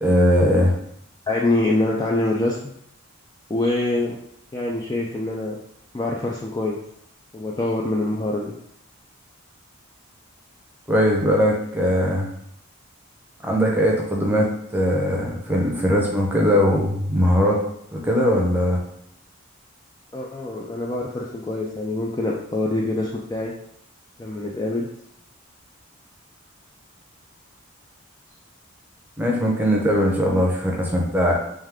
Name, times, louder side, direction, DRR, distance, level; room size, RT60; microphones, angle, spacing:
voice 1, 0.0-0.7 10.9-12.3 13.4-17.6 17.9-18.8 29.2-31.3, equal, 10° right, -2 dB, 0.7 m, -20 dB
voice 2, 1.3-2.7 3.5-4.2 4.5-5.6 5.9-6.8 7.3-8.5 20.1-23.5 24.2-24.9, left 2 dB, 20° left, -2 dB, 0.3 m, -25 dB
3.5 x 3.2 x 3.5 m, 0.73 s
head